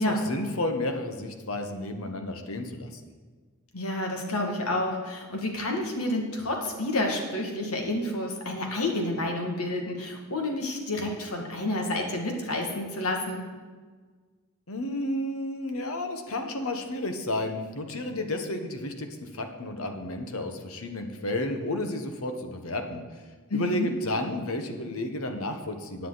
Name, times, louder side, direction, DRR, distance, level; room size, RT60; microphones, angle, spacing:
voice 1, 0.0-2.9 14.7-23.0 23.5-26.1, left 1 dB, 70° left, 5 dB, 1.3 m, -32 dB
voice 2, 3.7-13.4 23.5-23.9, left 1 dB, 90° left, 1 dB, 2.2 m, -29 dB
15.5 x 9.3 x 4.1 m, 1.5 s
head